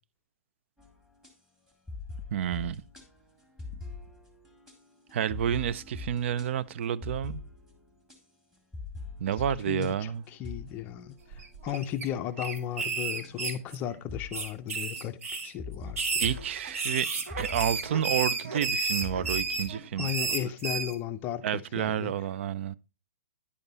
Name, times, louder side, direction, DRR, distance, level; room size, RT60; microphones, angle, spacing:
sound 1, 0.8-1.3 1.7-8.2 8.5-12.0 12.4-12.8 13.2-13.3 14.1-14.6 14.9-15.0 15.6-19.7, left 4 dB, 5° right, 1.7 m, -44 dB
voice 1, 2.3-2.8 5.1-7.4 9.2-10.2 16.2-17.1 17.4-20.1 21.4-22.7, right 9 dB, 55° right, 0.4 m, -30 dB
voice 2, 9.7-11.2 11.6-16.0 20.0-22.1, left 10 dB, 25° left, 0.5 m, -35 dB
sound 2, 11.3-12.0 12.4-13.9 14.3-15.5 15.9-20.9, right 4 dB, 70° right, 1.7 m, -32 dB
9.8 x 5.3 x 4.0 m
hypercardioid pair, 145°, 8 cm